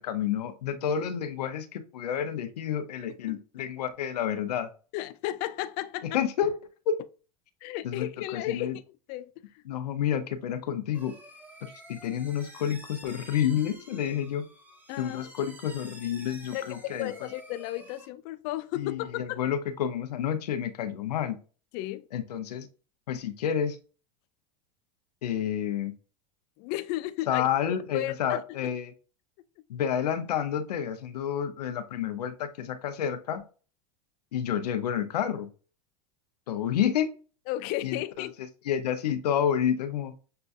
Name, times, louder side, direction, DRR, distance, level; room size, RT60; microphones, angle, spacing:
voice 1, 0.0-4.7 6.1-6.5 7.8-8.8 9.7-11.1 11.6-14.4 15.0-17.1 18.8-21.4 22.1-22.7 23.1-23.8 25.2-25.9 27.3-28.9 29.7-33.4 34.3-35.5 36.5-37.1 37.8-38.3 38.7-40.1, left 9 dB, 90° left, 0.7 m, -29 dB
voice 2, 4.9-6.2 7.6-8.8 9.1-9.6 14.9-15.3 16.5-19.4 21.7-22.1 26.6-27.5 27.9-28.7 37.5-38.3, left 15 dB, 50° left, 0.4 m, -34 dB
sound 1, 10.9-18.1, equal, 10° right, 1.0 m, -50 dB
6.6 x 2.3 x 2.6 m
hypercardioid pair, 110°, 20 cm